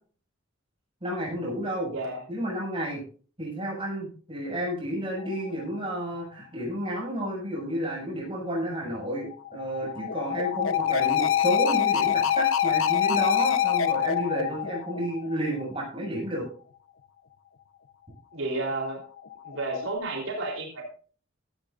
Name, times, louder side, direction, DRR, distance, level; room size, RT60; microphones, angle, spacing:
voice 1, 1.0-1.9 2.3-3.0 3.4-9.3 9.5-16.5, right 1 dB, 25° right, -3 dB, 7.0 m, -31 dB
sound 1, 5.2-5.6 9.2-15.6 19.2-20.0, left 9 dB, 85° left, 0.9 m, -26 dB
voice 2, 18.3-19.0 19.4-20.8, right 2 dB, 80° right, -1 dB, 3.8 m, -31 dB
16.0 x 13.0 x 2.6 m, 0.41 s
head